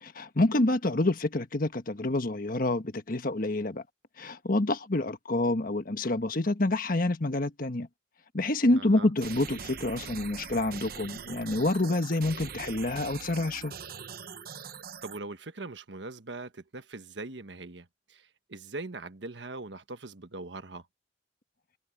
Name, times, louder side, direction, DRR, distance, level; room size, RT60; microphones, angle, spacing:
voice 1, 0.0-3.8 4.2-7.9 8.3-13.7, left 2 dB, 55° left, 1.4 m, -27 dB
voice 2, 8.8-9.1 15.0-20.9, right 3 dB, 80° right, 1.4 m, -41 dB
sound 1, 9.2-15.2, right 6 dB, 55° right, 1.0 m, -42 dB
head